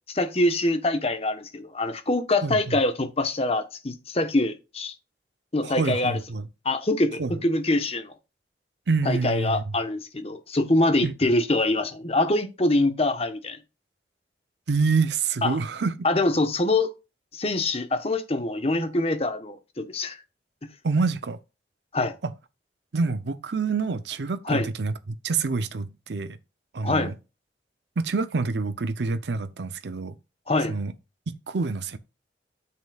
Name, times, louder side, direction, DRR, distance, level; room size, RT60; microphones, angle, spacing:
voice 1, 0.1-4.9 5.5-6.2 6.6-8.1 9.0-13.6 15.4-15.6 16.0-16.9 17.3-20.2 21.9-22.2 24.4-24.7 26.8-27.1 30.5-30.8, left 2 dB, 35° left, 1.1 m, -24 dB
voice 2, 5.6-6.4 7.2-7.3 8.9-9.6 11.0-11.1 14.7-15.9 20.8-21.4 22.2-22.3 22.9-24.9 25.2-26.4 26.7-27.1 28.0-30.2 30.7-30.9 31.5-32.0, right 4 dB, 75° right, 0.6 m, -26 dB
9.5 x 7.5 x 2.4 m
head